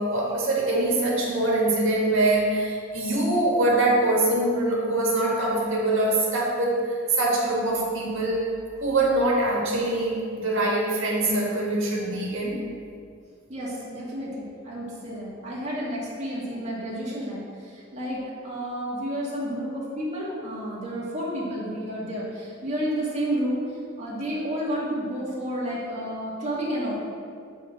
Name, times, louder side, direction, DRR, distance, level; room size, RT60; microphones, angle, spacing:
voice 1, 0.0-12.7, right 2 dB, 65° right, -3 dB, 1.9 m, -24 dB
voice 2, 13.5-23.6 24.0-27.0, equal, 35° right, -7 dB, 2.1 m, -31 dB
8.7 x 3.8 x 6.2 m, 2.2 s
head